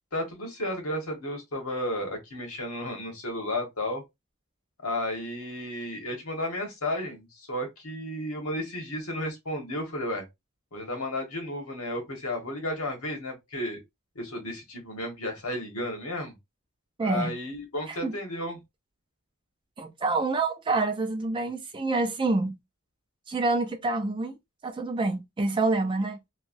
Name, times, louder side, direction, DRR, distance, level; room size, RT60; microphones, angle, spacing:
voice 1, 0.1-4.0 4.8-10.2 10.7-13.8 14.1-16.3 17.0-18.6, left 1 dB, 75° left, 1.3 m, -33 dB
voice 2, 17.0-17.3 17.9-18.1 19.8-22.6 23.3-24.3 24.6-26.2, right 3 dB, 20° right, 0.3 m, -27 dB
3.2 x 2.2 x 2.5 m
head